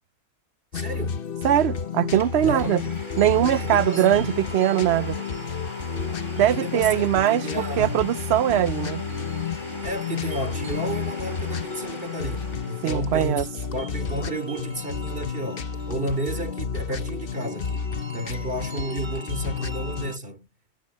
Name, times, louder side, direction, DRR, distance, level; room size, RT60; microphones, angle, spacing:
sound 1, 0.7-20.1, left 6 dB, 50° left, 1.1 m, -31 dB
voice 1, 0.7-1.2 2.4-3.0 3.5-4.4 6.4-7.9 9.8-20.5, right 1 dB, 50° right, 3.2 m, -32 dB
voice 2, 1.4-2.8 3.2-5.2 6.4-9.0 12.8-13.4, right 11 dB, 65° right, 0.8 m, -21 dB
Domestic sounds home sounds, 1.7-1.8 2.2-13.2, left 1 dB, 25° left, 4.2 m, -39 dB
sound 2, 1.7-20.2, equal, 25° right, 1.3 m, -45 dB
omnidirectional pair, 1.2 m